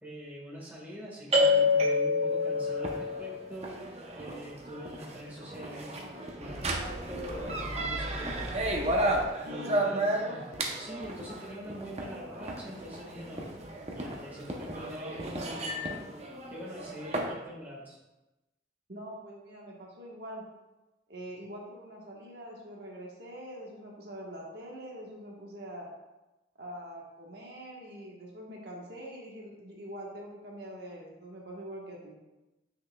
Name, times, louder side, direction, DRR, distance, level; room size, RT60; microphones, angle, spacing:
voice 1, 0.0-8.9 9.4-10.5 10.8-16.2 16.5-18.0, equal, 10° right, -5 dB, 1.6 m, -44 dB
sound 1, 1.3-17.3, left 1 dB, 35° right, 0.8 m, -31 dB
voice 2, 9.4-10.0 18.9-20.5 21.1-25.9 26.6-32.2, equal, 65° right, -2 dB, 1.3 m, -44 dB
7.8 x 6.4 x 2.3 m, 1.0 s
head